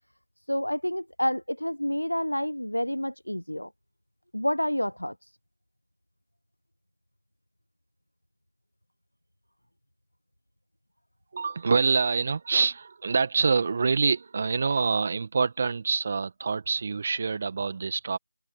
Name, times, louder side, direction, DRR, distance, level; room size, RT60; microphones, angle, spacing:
voice 1, 0.5-3.7 4.3-5.1, equal, 90° left, 1.2 m, -28 dB
voice 2, 11.3-18.2, right 5 dB, 25° right, 1.6 m, -26 dB
open air
figure-of-eight pair, 170°, 0 cm